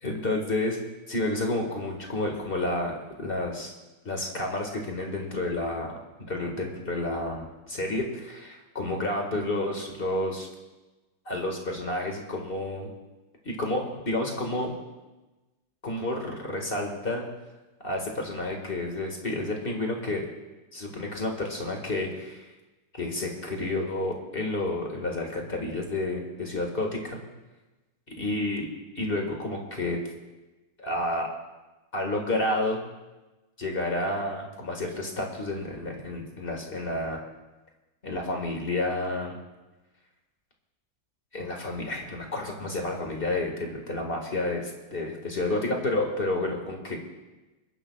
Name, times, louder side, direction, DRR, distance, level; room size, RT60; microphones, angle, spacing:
voice 1, 0.0-0.8 1.1-3.7 4.1-5.9 6.3-10.5 11.3-12.9 13.4-14.7 15.8-17.3 17.8-20.3 20.7-22.5 22.9-27.2 28.2-28.7 29.0-30.0 30.8-31.3 31.9-32.8 33.6-37.2 38.0-39.4 41.3-47.0, left 2 dB, 30° left, 1 dB, 2.0 m, -30 dB
28.5 x 11.0 x 2.4 m, 1.1 s
omnidirectional pair, 2.0 m